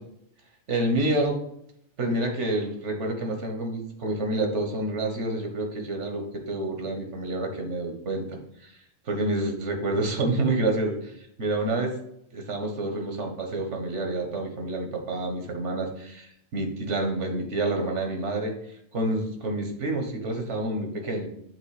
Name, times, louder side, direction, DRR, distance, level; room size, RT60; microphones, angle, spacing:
voice 1, 0.7-1.4 2.0-8.7 9.0-11.1 11.4-12.0 12.3-18.5 18.9-21.3, right 2 dB, 80° right, 3 dB, 1.5 m, -28 dB
7.6 x 3.1 x 4.8 m, 0.76 s
omnidirectional pair, 1.2 m